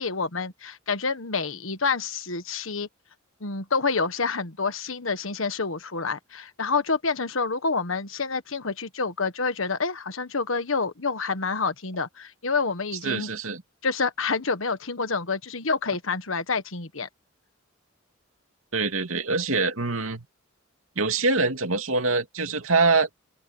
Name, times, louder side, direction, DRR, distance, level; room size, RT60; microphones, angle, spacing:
voice 1, 0.0-2.9 3.4-13.3 13.8-17.1, left 4 dB, 70° left, 1.4 m, -28 dB
voice 2, 13.0-13.6 18.7-20.3 21.0-23.1, right 3 dB, 80° right, 2.6 m, -24 dB
open air
head